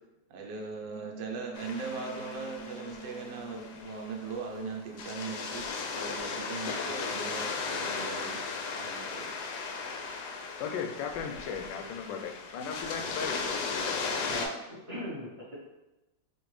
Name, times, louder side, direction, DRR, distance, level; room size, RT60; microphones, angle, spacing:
voice 1, 0.3-8.4 8.7-9.3, right 4 dB, 75° right, 1 dB, 1.3 m, -40 dB
Wind instrument woodwind instrument, 0.9-5.7, right 4 dB, 50° left, 0.6 m, -48 dB
sound 1, 1.5-14.5, left 4 dB, 70° left, 1.0 m, -36 dB
voice 2, 10.6-13.4, left 6 dB, 90° left, 4 dB, 1.3 m, -36 dB
voice 3, 14.3-15.5, equal, 40° right, -9 dB, 1.2 m, -39 dB
4.3 x 2.6 x 3.1 m, 1.0 s
omnidirectional pair, 2.0 m